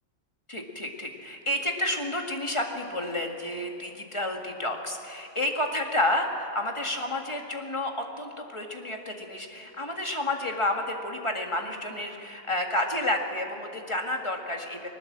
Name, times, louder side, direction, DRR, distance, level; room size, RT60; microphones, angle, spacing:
voice 1, 0.5-7.9 8.2-14.9, left 1 dB, 20° left, 2 dB, 1.9 m, -30 dB
21.0 x 19.5 x 7.5 m, 2.8 s
omnidirectional pair, 1.5 m